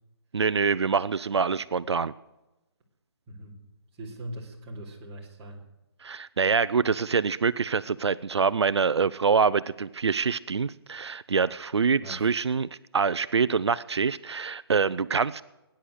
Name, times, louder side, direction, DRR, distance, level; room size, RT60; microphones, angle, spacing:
voice 1, 0.3-2.1 6.0-12.7 12.9-15.4, right 5 dB, 85° right, 16 dB, 0.6 m, -25 dB
voice 2, 3.3-3.6 3.9-5.7 12.0-12.3, right 1 dB, 20° right, -3 dB, 3.2 m, -41 dB
18.5 x 10.5 x 6.4 m, 1.0 s
hypercardioid pair, 160°, 14 cm